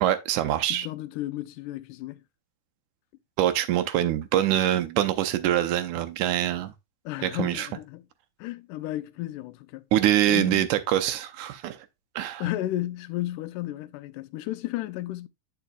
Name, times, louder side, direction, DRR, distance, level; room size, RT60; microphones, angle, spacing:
voice 1, 0.0-0.9 3.4-6.7 7.2-7.7 9.9-11.8 12.2-12.4, right 12 dB, 75° right, 2.1 m, -24 dB
voice 2, 0.7-2.2 7.1-8.1 8.4-9.8 10.3-10.7 12.4-15.3, left 15 dB, 85° left, 2.1 m, -33 dB
8.9 x 6.8 x 2.3 m
omnidirectional pair, 3.7 m